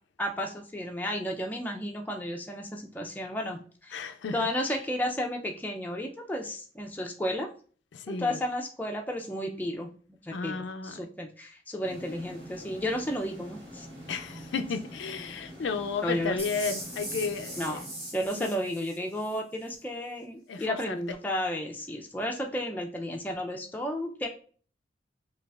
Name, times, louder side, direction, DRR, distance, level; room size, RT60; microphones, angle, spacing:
voice 1, 0.2-7.5 8.1-9.9 10.2-13.9 16.0-16.4 17.6-17.8 18.1-24.3, left 1 dB, 10° left, 0.4 m, -33 dB
voice 2, 3.9-4.5 7.9-8.4 10.3-10.9 14.1-17.8 18.3-18.5 20.5-21.0, left 5 dB, 90° left, 0.4 m, -33 dB
sound 1, 11.8-18.6, equal, 60° right, 1.4 m, -46 dB
sound 2, 16.4-19.4, right 1 dB, 35° right, 1.6 m, -40 dB
4.9 x 2.4 x 2.3 m
head